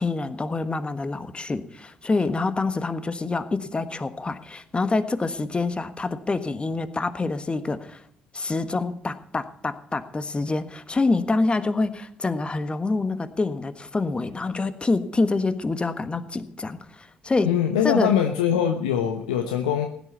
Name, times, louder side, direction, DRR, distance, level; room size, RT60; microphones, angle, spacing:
voice 1, 0.0-8.0 8.3-17.5 17.8-18.1, left 3 dB, 25° left, 11 dB, 1.4 m, -26 dB
voice 2, 17.4-19.9, left 9 dB, 85° left, 5 dB, 1.0 m, -22 dB
16.5 x 10.5 x 5.6 m, 0.66 s
hypercardioid pair, 55°, 4 cm